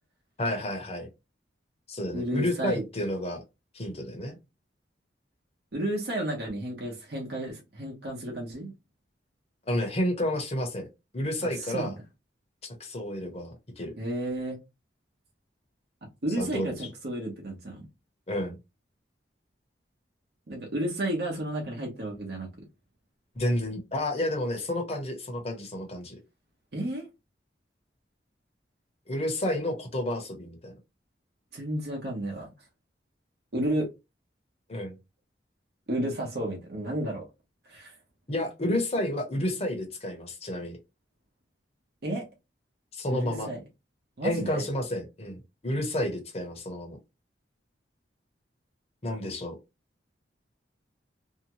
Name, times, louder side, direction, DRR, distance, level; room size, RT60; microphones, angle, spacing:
voice 1, 0.4-1.1 1.9-3.4 3.7-4.4 9.7-10.9 11.1-11.9 12.6-13.9 16.4-16.9 18.3-18.6 23.3-26.2 29.1-30.7 34.7-34.9 38.3-40.8 42.9-43.5 44.2-47.0 49.0-49.5, left 1 dB, 35° left, 0.8 m, -30 dB
voice 2, 2.1-2.8 5.7-8.7 11.6-11.9 14.0-14.6 16.2-17.9 20.5-22.5 26.7-27.1 31.5-32.5 33.5-33.9 35.9-37.2 37.7-37.9 42.0-42.2 43.1-43.6 44.2-44.6, right 1 dB, 60° right, 0.9 m, -32 dB
2.7 x 2.2 x 2.9 m
head